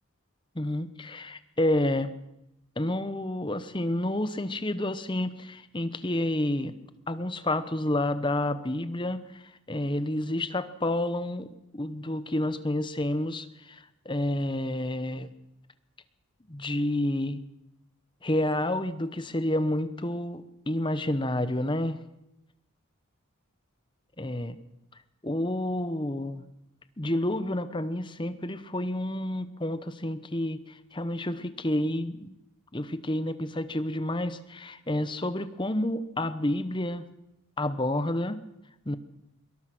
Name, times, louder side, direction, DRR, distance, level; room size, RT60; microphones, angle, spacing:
voice 1, 0.5-2.1 2.8-6.8 7.1-11.5 11.7-15.3 16.5-17.4 18.2-22.0 24.2-24.6 25.2-26.5 27.0-32.3 32.7-37.1 37.6-38.4 38.9-39.0, left 1 dB, 20° left, 12 dB, 1.0 m, -29 dB
22.5 x 19.0 x 6.1 m, 0.86 s
head